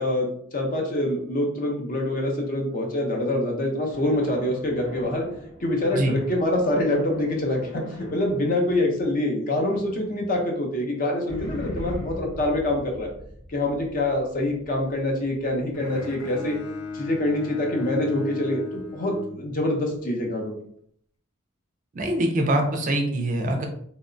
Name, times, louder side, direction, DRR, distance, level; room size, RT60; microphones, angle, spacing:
voice 1, 0.0-5.3 5.6-13.1 13.5-16.6 16.9-20.5, left 1 dB, 40° left, 1 dB, 0.5 m, -25 dB
sound 1, 3.9-9.8 11.3-16.6, left 1 dB, 70° left, 0.9 m, -41 dB
Bowed string instrument, 15.7-20.0, left 3 dB, 90° left, 0.5 m, -35 dB
voice 2, 21.9-23.6, right 1 dB, 35° right, 4 dB, 0.3 m, -23 dB
2.8 x 2.1 x 2.5 m, 0.66 s
head